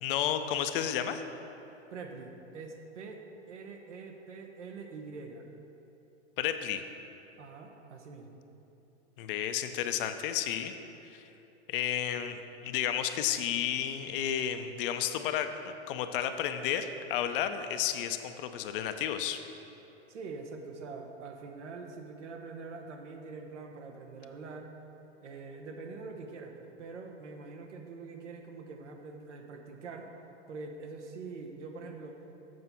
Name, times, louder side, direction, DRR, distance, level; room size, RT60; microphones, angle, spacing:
voice 1, 0.0-1.2 6.4-6.8 9.2-10.7 11.1-11.3 11.7-19.4, left 10 dB, 50° left, 8 dB, 0.5 m, -32 dB
voice 2, 1.9-3.2 3.5-5.5 7.4-8.4 12.1-12.2 20.1-24.7 25.2-30.1 30.5-32.2, right 4 dB, 80° right, 3 dB, 1.1 m, -44 dB
7.8 x 4.7 x 5.6 m, 3.0 s
hypercardioid pair, 120°, 35 cm